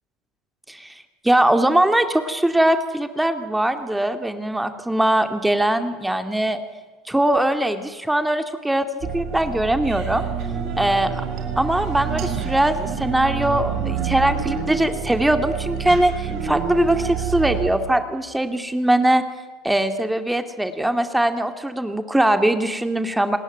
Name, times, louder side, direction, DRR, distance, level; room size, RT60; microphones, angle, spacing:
voice 1, 1.2-6.6 7.1-8.9 9.1-10.3 10.8-11.1 11.6-19.2 19.6-23.4, right 1 dB, 5° right, 8 dB, 2.4 m, -21 dB
sound 1, 9.0-17.7, right 7 dB, 55° right, 5.4 m, -27 dB
28.0 x 20.5 x 9.4 m, 1.3 s
figure-of-eight pair, 65°, 0 cm